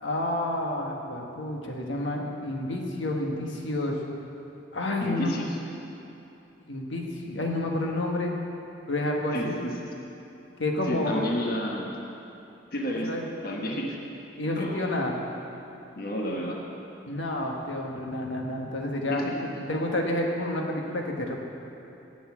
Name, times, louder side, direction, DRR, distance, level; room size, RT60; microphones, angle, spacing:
voice 1, 0.0-3.9 4.7-5.5 6.7-8.3 8.9-9.6 10.6-11.2 13.0-13.2 13.7-13.8 14.4-15.1 17.1-19.2 19.7-21.4, left 1 dB, 85° left, 0 dB, 1.4 m, -29 dB
voice 2, 5.0-5.6 9.3-9.7 10.9-11.9 12.7-13.1 13.4-14.0 14.5-15.0 16.0-16.6 19.1-19.7, equal, 50° left, -1 dB, 1.2 m, -31 dB
11.0 x 7.2 x 8.5 m, 2.9 s
head